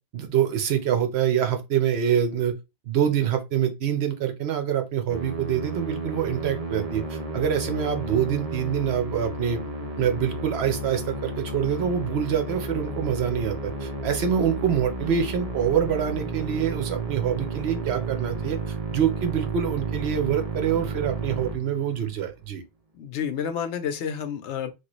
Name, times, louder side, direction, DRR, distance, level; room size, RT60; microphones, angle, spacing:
voice 1, 0.1-2.5 2.9-9.6 10.0-22.6, right 9 dB, 70° right, 0.9 m, -25 dB
Musical instrument, 5.1-22.2, right 2 dB, 40° right, 0.7 m, -32 dB
voice 2, 22.9-24.7, left 8 dB, 85° left, 0.9 m, -30 dB
3.0 x 2.3 x 2.9 m
omnidirectional pair, 1.2 m